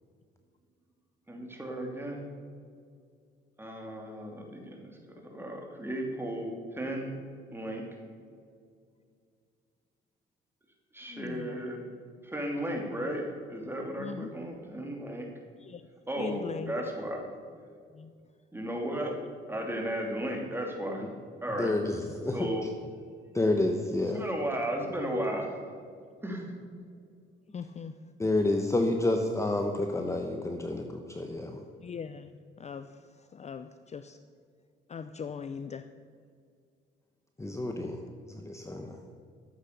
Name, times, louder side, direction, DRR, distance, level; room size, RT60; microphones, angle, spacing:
voice 1, 1.3-2.2 3.6-4.8 5.2-7.2 7.5-7.8 10.9-11.9 12.2-15.3 16.1-17.2 18.5-19.2 19.5-21.1 21.4-21.7 22.3-22.6 24.1-25.5 26.2-26.5, right 1 dB, 10° right, 1 dB, 2.8 m, -34 dB
voice 2, 11.1-11.6 14.0-14.3 15.6-15.8 16.2-16.7 17.9-18.1 27.5-27.9 31.8-32.3 32.6-32.9 33.3-34.2 34.9-35.9, left 6 dB, 35° left, 11 dB, 0.5 m, -40 dB
voice 3, 21.6-22.5 23.3-24.2 28.2-31.6 37.4-38.0 38.3-39.0, left 2 dB, 15° left, 4 dB, 1.0 m, -29 dB
12.5 x 8.2 x 6.7 m, 2.2 s
cardioid pair, 90°, 20 cm